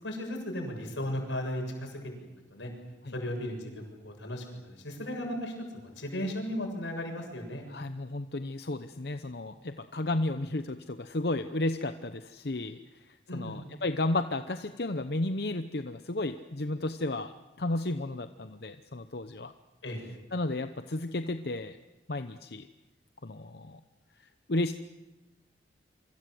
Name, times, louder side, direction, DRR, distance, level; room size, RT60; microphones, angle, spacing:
voice 1, 0.0-2.7 3.1-7.7 13.3-13.6 19.8-20.0, left 1 dB, 90° left, 3 dB, 7.3 m, -36 dB
voice 2, 7.7-17.3 17.6-19.5 20.3-21.8 22.1-22.7 23.2-23.8 24.5-24.7, left 2 dB, 60° left, 9 dB, 0.9 m, -33 dB
27.5 x 24.5 x 7.8 m, 1.1 s
head